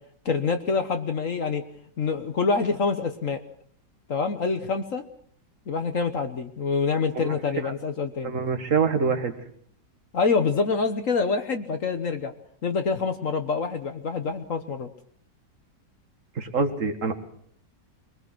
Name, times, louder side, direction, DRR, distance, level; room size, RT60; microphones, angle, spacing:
voice 1, 0.2-1.6 2.0-3.4 4.1-5.0 5.7-8.3 10.1-12.3 12.6-14.9, left 4 dB, 50° left, 8 dB, 1.4 m, -26 dB
voice 2, 8.2-9.3 16.4-17.1, right 5 dB, 45° right, 8 dB, 2.2 m, -25 dB
23.0 x 19.5 x 6.2 m, 0.62 s
omnidirectional pair, 1.9 m